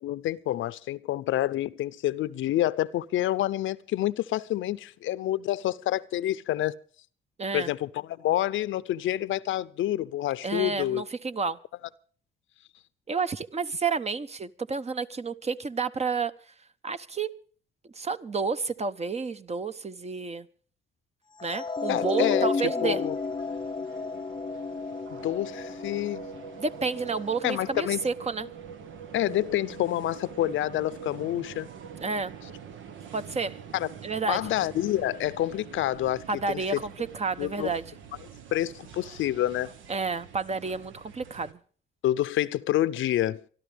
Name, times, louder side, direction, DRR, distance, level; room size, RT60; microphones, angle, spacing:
voice 1, 0.0-6.8 7.5-11.0 21.9-23.1 25.1-26.2 27.4-28.0 29.1-31.7 33.7-33.9 34.3-36.8 37.4-37.7 38.5-39.7 42.0-43.4, left 13 dB, 75° left, 0.7 m, -28 dB
voice 2, 7.4-7.7 10.4-11.6 13.1-16.3 16.8-17.3 17.9-20.5 21.4-23.0 26.6-28.5 32.0-32.3 33.1-33.6 34.0-34.4 36.3-37.9 39.9-41.6, right 4 dB, 35° right, 1.0 m, -30 dB
sound 1, 21.4-27.6, left 4 dB, 20° left, 0.6 m, -33 dB
sound 2, 22.9-41.5, right 7 dB, 80° right, 1.4 m, -45 dB
25.5 x 12.5 x 3.5 m
cardioid pair, 90°, 20 cm